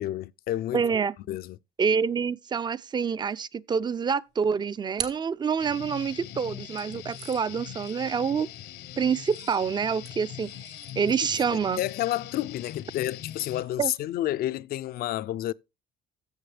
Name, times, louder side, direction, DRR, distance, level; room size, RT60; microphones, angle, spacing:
voice 1, 0.0-0.8 1.3-1.6 11.5-15.5, left 14 dB, 60° left, 0.5 m, -30 dB
voice 2, 0.7-1.1 1.8-8.5 9.0-10.5 11.0-11.8 13.8-13.9, right 6 dB, 25° right, 0.4 m, -27 dB
sound 1, 4.3-6.1 6.8-14.4, right 9 dB, 75° right, 1.8 m, -45 dB
Guitar, 5.6-13.6, left 11 dB, 80° left, 1.0 m, -42 dB
14.5 x 6.5 x 3.3 m
cardioid pair, 110°, 17 cm